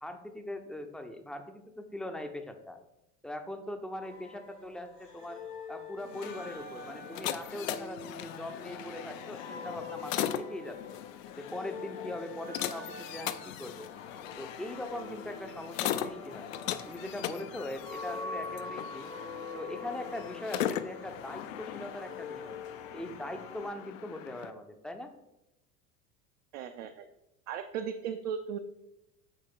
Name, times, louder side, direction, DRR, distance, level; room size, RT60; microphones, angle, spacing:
voice 1, 0.0-2.8 3.2-5.4 5.7-11.0 11.4-13.9 14.4-16.5 16.9-19.1 19.5-22.6 22.9-25.1, left 1 dB, ahead, 6 dB, 0.6 m, -41 dB
sound 1, 4.0-23.2, left 3 dB, 75° left, 1.7 m, -45 dB
sound 2, 6.0-24.5, left 11 dB, 60° left, 0.6 m, -39 dB
sound 3, 13.9-23.7, left 5 dB, 30° left, 0.8 m, -51 dB
voice 2, 26.5-27.1 27.5-28.6, right 7 dB, 55° right, 6 dB, 0.6 m, -36 dB
7.7 x 4.3 x 4.6 m, 0.88 s
figure-of-eight pair, 75°, 46 cm